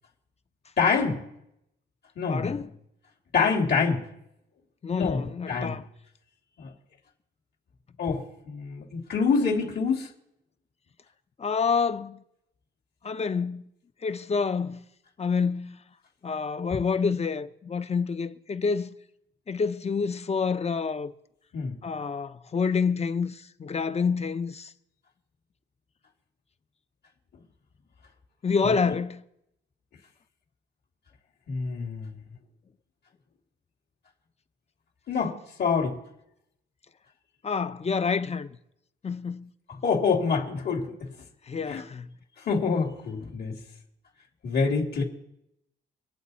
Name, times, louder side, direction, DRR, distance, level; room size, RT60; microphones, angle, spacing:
voice 1, 0.8-1.2 2.2-2.6 3.3-4.1 4.9-5.8 6.6-6.7 8.0-10.1 21.5-21.7 28.6-28.8 31.5-32.1 35.1-36.0 39.7-40.9 41.7-41.8 42.4-43.6 44.4-45.0, left 5 dB, 55° left, 2.8 m, -26 dB
voice 2, 2.3-2.7 4.8-5.8 11.4-12.2 13.0-13.6 14.0-14.8 15.2-15.8 16.2-18.9 19.5-21.1 21.8-24.7 28.4-29.2 37.4-38.5 39.0-39.5 41.5-42.1, left 5 dB, 30° left, 0.9 m, -28 dB
25.5 x 8.6 x 4.2 m
cardioid pair, 90°, 20 cm